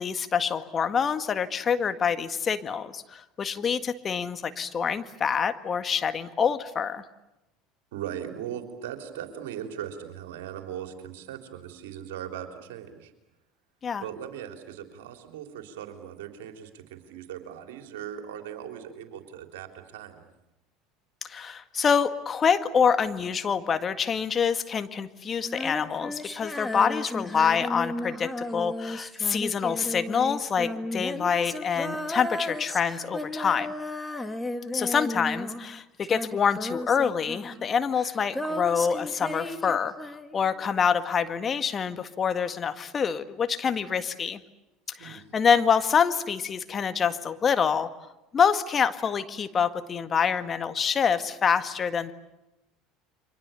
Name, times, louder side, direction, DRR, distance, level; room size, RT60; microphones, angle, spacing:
voice 1, 0.0-7.0 13.8-14.0 21.2-33.7 34.7-44.4 45.0-47.9 48.3-52.1, left 6 dB, 35° left, 11 dB, 1.8 m, -26 dB
voice 2, 7.9-13.1 14.0-20.3 45.0-45.2, right 10 dB, 75° right, 6 dB, 3.6 m, -39 dB
Female singing, 25.4-35.8 36.0-40.5, left 1 dB, 10° left, 2.5 m, -34 dB
30.0 x 25.0 x 7.0 m, 0.97 s
hypercardioid pair, 75°, 0 cm